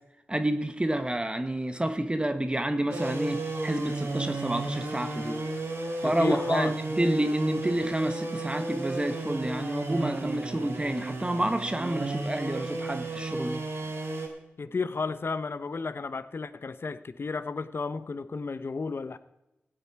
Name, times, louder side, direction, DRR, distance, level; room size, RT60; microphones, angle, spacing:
voice 1, 0.3-5.4 6.0-13.6, right 1 dB, 20° right, 9 dB, 1.1 m, -29 dB
sound 1, 2.9-14.3, right 2 dB, 70° right, 2.5 m, -33 dB
voice 2, 6.0-6.8 14.6-19.2, left 4 dB, 55° left, 14 dB, 0.7 m, -32 dB
15.5 x 8.7 x 4.7 m, 0.94 s
cardioid pair, 40°, 5 cm